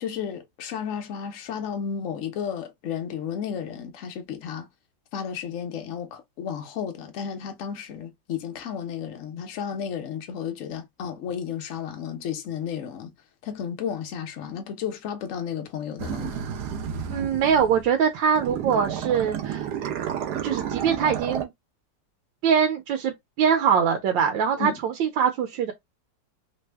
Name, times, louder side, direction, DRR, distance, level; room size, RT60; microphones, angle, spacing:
voice 1, 0.0-4.7 5.1-13.1 13.4-16.4 24.6-24.8, left 8 dB, 60° left, 0.8 m, -33 dB
sound 1, 16.0-18.0 18.3-21.4, right 8 dB, 70° right, 1.1 m, -31 dB
voice 2, 17.1-19.7 20.4-21.5 22.4-25.7, right 7 dB, 85° right, 1.4 m, -23 dB
3.3 x 2.1 x 3.3 m
omnidirectional pair, 2.0 m